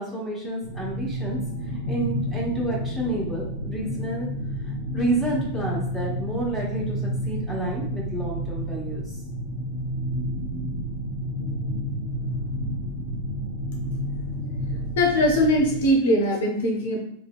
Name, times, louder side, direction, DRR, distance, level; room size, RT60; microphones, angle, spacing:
voice 1, 0.0-1.4 1.9-4.3 4.9-9.1, right 1 dB, 15° right, -5 dB, 1.3 m, -29 dB
sound 1, 0.6-15.9, equal, 80° right, 1.3 m, -30 dB
voice 2, 14.6-17.0, equal, 55° left, 1 dB, 0.6 m, -21 dB
3.0 x 2.8 x 2.2 m, 0.70 s
figure-of-eight pair, 90°, 0 cm